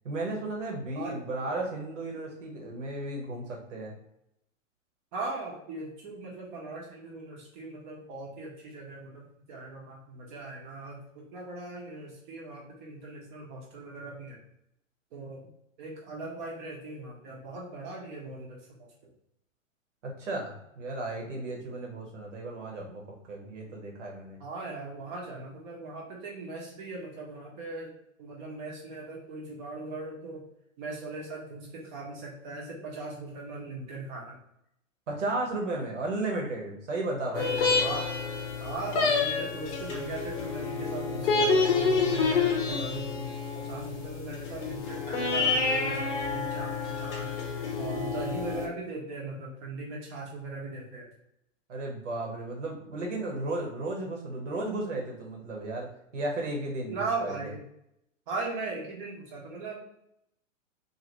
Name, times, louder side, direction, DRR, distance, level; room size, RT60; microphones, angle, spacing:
voice 1, 0.0-3.9 20.0-23.0 23.3-24.4 35.1-37.7 51.7-57.4, right 2 dB, 65° right, 0 dB, 1.2 m, -34 dB
voice 2, 5.1-14.4 15.1-15.5 15.8-18.9 24.4-27.9 28.2-30.4 30.8-34.4 37.8-38.1 38.6-47.3 47.8-51.1 56.9-57.6 58.3-59.8, right 3 dB, 40° right, -2 dB, 0.9 m, -39 dB
sound 1, 37.3-48.7, left 4 dB, 60° left, 0.8 m, -28 dB
2.8 x 2.6 x 2.9 m, 0.78 s
hypercardioid pair, 115°, 40 cm